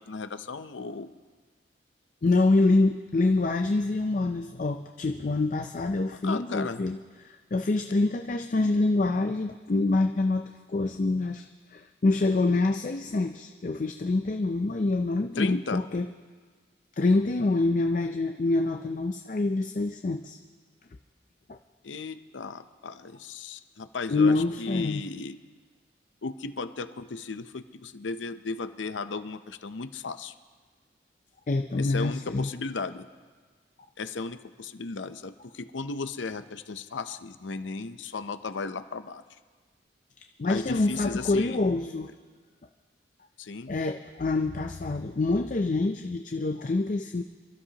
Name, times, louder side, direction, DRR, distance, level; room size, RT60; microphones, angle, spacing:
voice 1, 0.1-1.1 6.2-6.8 15.4-15.8 21.8-25.4 26.2-30.3 31.8-33.1 34.0-39.2 40.4-41.6 43.4-43.7, left 4 dB, 90° left, 11 dB, 0.6 m, -35 dB
voice 2, 2.2-11.5 11.7-16.1 17.0-20.4 21.5-21.6 24.1-25.0 31.5-32.5 40.4-42.1 43.7-47.2, left 2 dB, 45° left, 6 dB, 0.4 m, -26 dB
27.5 x 12.5 x 2.9 m, 1.5 s
head